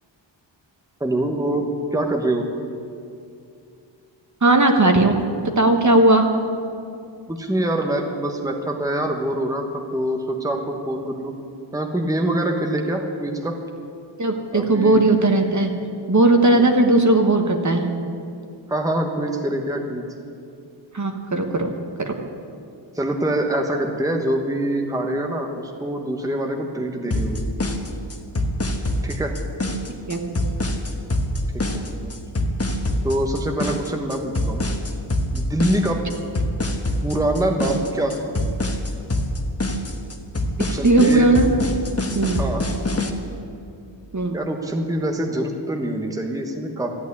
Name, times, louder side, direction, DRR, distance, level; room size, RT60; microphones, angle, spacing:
voice 1, 1.0-2.5 7.3-11.3 11.7-13.6 14.5-15.0 16.5-16.7 18.7-20.1 22.9-27.5 29.0-29.3 31.5-32.1 33.0-34.6 35.3-36.1 37.0-38.3 40.7-41.3 42.4-42.7 44.3-47.0, right 1 dB, 5° right, 3 dB, 1.2 m, -25 dB
voice 2, 4.4-5.2 5.6-6.3 14.2-15.7 16.1-17.9 20.9-21.7 22.0-22.1 30.1-30.3 40.6-41.6 42.1-42.4 44.1-44.3, right 2 dB, 40° right, 4 dB, 1.4 m, -17 dB
sound 1, 27.1-43.1, left 1 dB, 30° left, 1.3 m, -25 dB
13.5 x 9.1 x 9.7 m, 2.5 s
wide cardioid pair, 105°, 46 cm